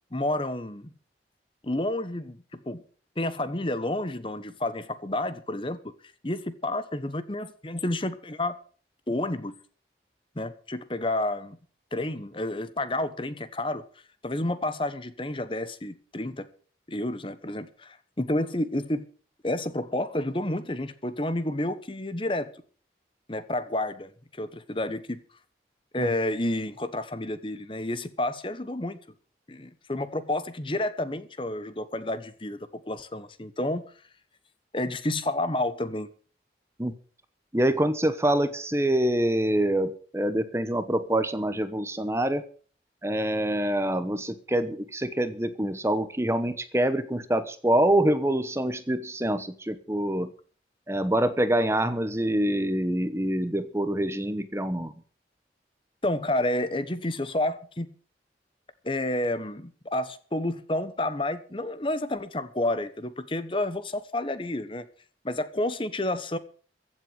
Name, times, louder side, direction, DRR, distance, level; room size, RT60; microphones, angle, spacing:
voice 1, 0.1-0.9 1.6-2.8 3.2-5.8 6.2-8.6 9.1-9.5 10.4-11.6 11.9-13.8 14.2-16.5 16.9-19.1 19.4-22.5 23.3-24.1 24.4-25.2 25.9-29.0 29.5-33.8 34.7-36.1 56.0-57.9 58.8-64.9 65.2-66.4, left 1 dB, 30° left, 1.1 m, -30 dB
voice 2, 37.5-42.4 43.0-50.3 50.9-54.9, right 1 dB, 15° right, 1.0 m, -25 dB
15.5 x 7.7 x 7.9 m
head